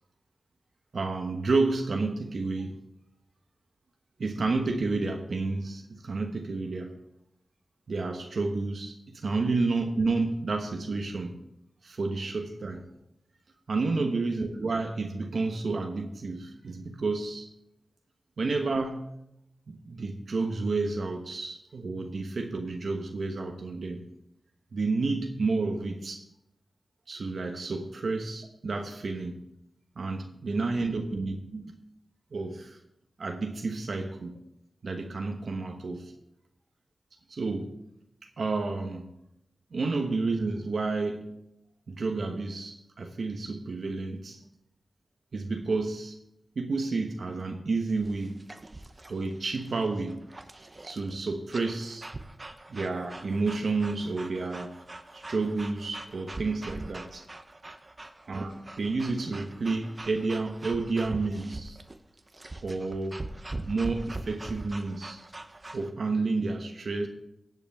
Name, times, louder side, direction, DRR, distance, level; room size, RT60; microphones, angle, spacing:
voice 1, 0.9-2.8 4.2-7.0 7.9-11.3 11.8-12.8 13.7-17.5 18.4-19.1 19.7-24.0 24.7-26.2 27.1-29.3 30.0-31.8 32.3-32.8 33.2-34.4 34.8-36.1 37.3-37.7 38.4-39.1 39.7-41.3 41.9-44.4 45.3-46.2 46.5-48.4 49.1-50.2 50.8-52.1 52.7-54.7 55.1-57.2 58.3-58.5 58.8-61.8 62.6-63.2 63.7-65.2 65.7-67.1, right 3 dB, 75° right, 3 dB, 1.1 m, -30 dB
sound 1, 47.9-65.9, right 2 dB, 35° right, 0.9 m, -43 dB
16.0 x 8.2 x 3.6 m, 0.82 s
cardioid pair, 60°, 0 cm